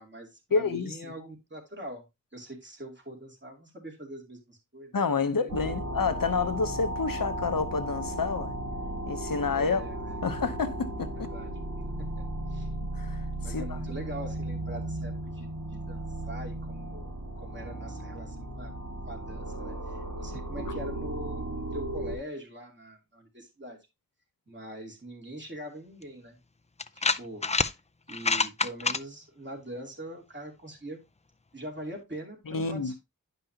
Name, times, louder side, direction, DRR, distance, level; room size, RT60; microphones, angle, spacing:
voice 1, 0.0-2.0 2.3-5.8 9.5-10.2 11.1-11.5 12.2-12.7 13.4-18.7 19.0-23.8 24.5-26.4 26.9-27.4 28.1-31.0 31.5-32.9, right 1 dB, 35° right, 2.8 m, -43 dB
voice 2, 0.5-0.9 4.9-8.5 9.1-9.8 10.2-11.3 13.0-13.2 13.5-14.0 32.5-32.9, left 4 dB, 85° left, 0.9 m, -29 dB
sound 1, 5.5-22.2, right 1 dB, 60° right, 2.0 m, -35 dB
sound 2, 26.0-26.1 26.8-27.7 28.1-29.0, left 4 dB, 20° left, 0.4 m, -26 dB
10.0 x 5.4 x 2.8 m
wide cardioid pair, 50°, 33 cm